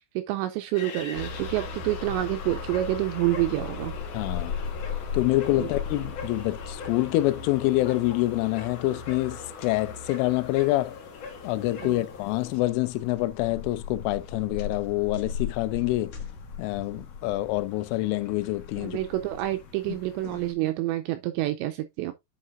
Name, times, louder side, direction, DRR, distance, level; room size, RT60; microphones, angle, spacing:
voice 1, 0.2-3.9 5.6-5.7 11.8-12.0 18.8-22.1, right 16 dB, 85° right, 2.6 m, -28 dB
sound 1, 0.7-12.6, left 5 dB, 50° left, 2.2 m, -42 dB
sound 2, 1.1-20.5, left 5 dB, 65° left, 1.8 m, -38 dB
voice 2, 4.1-4.5 5.1-11.0 11.4-16.1 16.6-19.0, left 18 dB, 85° left, 3.1 m, -26 dB
8.7 x 5.5 x 2.5 m
omnidirectional pair, 5.6 m